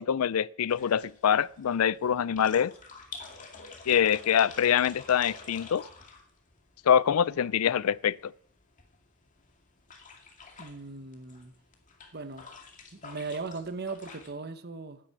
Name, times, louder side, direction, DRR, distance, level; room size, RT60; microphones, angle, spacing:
voice 1, 0.0-2.7 3.9-5.9 6.9-8.3, left 8 dB, 90° left, 0.4 m, -25 dB
sound 1, 0.7-14.3, left 4 dB, 35° left, 2.3 m, -50 dB
voice 2, 10.6-11.5 12.1-12.5 13.0-15.0, right 4 dB, 50° right, 1.0 m, -38 dB
9.9 x 8.7 x 9.7 m
head